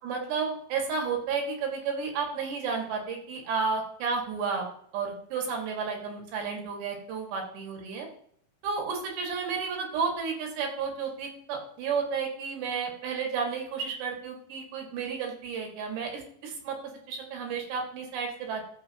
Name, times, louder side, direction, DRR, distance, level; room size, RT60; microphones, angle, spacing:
voice 1, 0.0-4.7 4.9-8.1 8.6-16.8 17.1-18.6, right 5 dB, 70° right, 1 dB, 4.1 m, -32 dB
13.5 x 6.7 x 3.0 m, 0.65 s
omnidirectional pair, 5.3 m